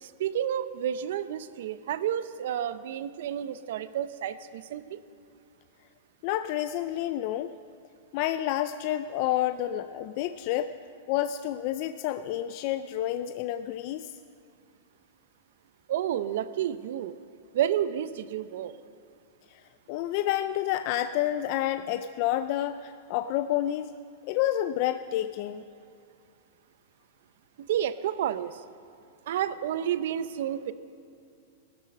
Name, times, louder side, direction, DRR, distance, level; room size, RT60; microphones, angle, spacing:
voice 1, 0.0-5.0 15.9-17.1 17.5-18.7 27.7-28.6 29.3-30.7, right 10 dB, 65° right, 14 dB, 0.6 m, -30 dB
voice 2, 6.2-7.5 8.1-10.7 11.1-14.1 19.5-19.6 19.9-23.9 24.3-25.6, left 12 dB, 45° left, 11 dB, 0.4 m, -29 dB
17.5 x 12.5 x 5.3 m, 2.5 s
supercardioid pair, 160°, 0 cm